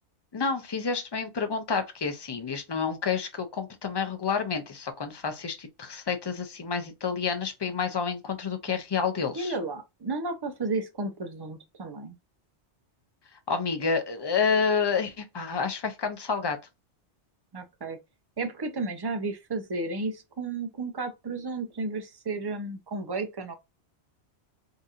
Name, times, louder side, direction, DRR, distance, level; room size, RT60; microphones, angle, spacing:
voice 1, 0.3-9.5 13.5-16.6, left 5 dB, 35° left, 0.4 m, -29 dB
voice 2, 9.4-12.2 17.5-18.0 18.4-23.5, right 3 dB, 35° right, 0.4 m, -33 dB
3.9 x 2.7 x 2.4 m
omnidirectional pair, 1.2 m